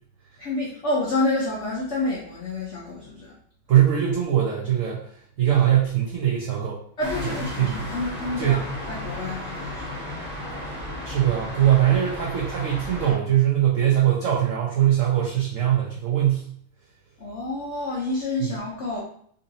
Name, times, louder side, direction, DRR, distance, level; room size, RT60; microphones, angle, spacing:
voice 1, 0.4-3.3 7.0-9.9 17.2-19.0, left 2 dB, 75° left, -5 dB, 0.6 m, -28 dB
voice 2, 3.7-5.0 5.4-6.8 7.2-7.8 8.4-8.7 11.0-16.5, right 11 dB, 85° right, -4 dB, 0.7 m, -21 dB
sound 1, 7.0-13.1, left 1 dB, 5° left, 1.1 m, -34 dB
4.0 x 2.7 x 2.6 m, 0.63 s
omnidirectional pair, 2.1 m